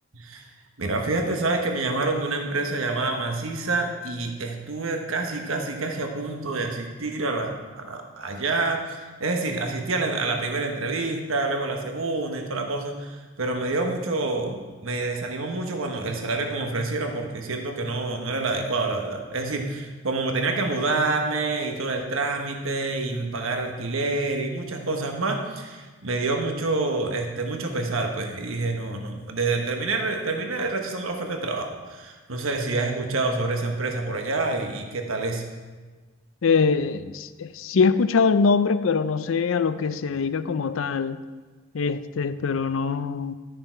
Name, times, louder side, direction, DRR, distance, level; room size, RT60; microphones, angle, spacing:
voice 1, 0.1-0.4 0.8-35.4, right 3 dB, 80° right, 1.2 m, -27 dB
voice 2, 36.4-41.2 41.7-43.3, left 5 dB, 75° left, 0.5 m, -23 dB
12.0 x 6.8 x 4.6 m
head